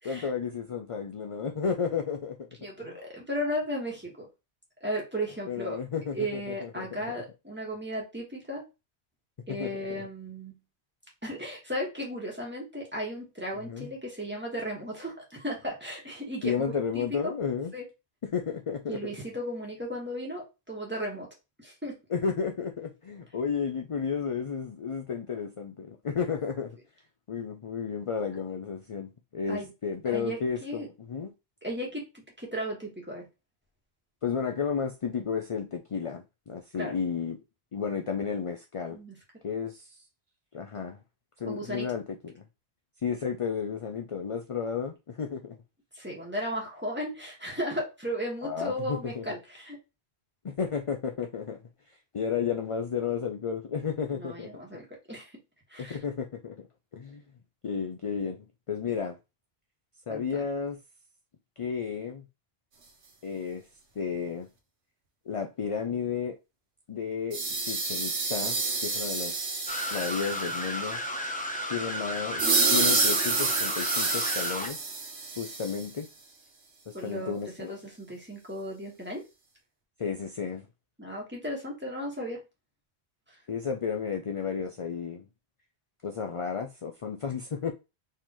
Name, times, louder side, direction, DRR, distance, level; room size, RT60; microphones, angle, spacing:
voice 1, 0.0-2.4 5.5-6.9 9.5-10.0 13.6-13.9 16.4-17.7 18.3-19.0 22.1-26.7 27.3-31.3 34.2-37.4 37.7-39.0 39.4-40.0 40.5-41.0 41.4-42.4 43.0-45.6 48.4-49.4 50.4-51.6 52.1-54.5 55.8-56.6 56.9-57.2 57.6-59.2 60.1-60.8 61.6-62.2 63.2-63.6 64.0-64.5 65.3-66.4 66.9-69.4 69.9-71.0 71.7-74.8 75.4-76.1 76.9-77.8 80.0-80.7 83.5-85.3 86.0-87.7, left 6 dB, 45° left, 0.5 m, -32 dB
voice 2, 2.6-4.3 4.8-5.8 6.1-8.6 9.5-10.6 11.2-16.5 16.9-17.3 17.7-17.8 18.9-21.3 21.6-22.0 29.5-29.7 30.0-30.9 31.6-33.3 36.8-36.9 38.9-39.2 41.4-41.9 45.9-49.8 54.1-55.3 55.7-56.0 60.1-60.2 76.9-79.2 81.0-82.4, equal, 10° right, 1.6 m, -35 dB
sound 1, 67.3-70.7 72.4-75.9, right 4 dB, 90° right, 1.2 m, -28 dB
sound 2, 69.7-74.7, equal, 10° left, 0.7 m, -33 dB
4.5 x 3.6 x 3.0 m
omnidirectional pair, 1.1 m